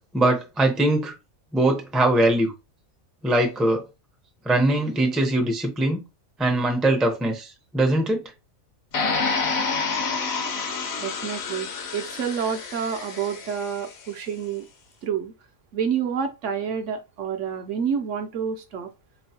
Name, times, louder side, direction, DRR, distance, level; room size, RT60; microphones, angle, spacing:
voice 1, 0.1-1.1 1.5-2.5 3.2-3.8 4.4-6.0 6.4-8.2, right 1 dB, ahead, 0.4 m, -21 dB
sound 1, 8.9-13.9, left 4 dB, 55° left, 0.8 m, -28 dB
voice 2, 11.0-14.7 15.0-15.3 15.7-18.9, right 7 dB, 65° right, 0.8 m, -28 dB
4.2 x 3.0 x 2.7 m
omnidirectional pair, 1.5 m